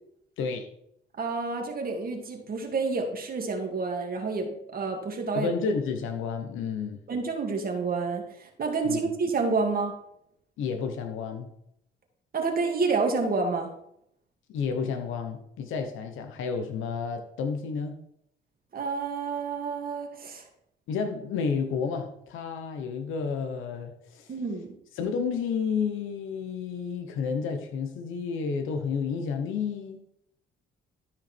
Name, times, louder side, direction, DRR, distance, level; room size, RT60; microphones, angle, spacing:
voice 1, 1.2-5.5 7.1-9.9 12.3-13.7 18.7-20.4 24.3-24.8, right 4 dB, 50° right, 2 dB, 2.1 m, -29 dB
voice 2, 5.3-7.0 8.8-9.0 10.6-11.5 14.5-17.9 20.9-24.3 25.0-30.0, left 5 dB, 85° left, 5 dB, 1.2 m, -31 dB
12.5 x 5.4 x 4.5 m, 0.73 s
cardioid pair, 90°, 20 cm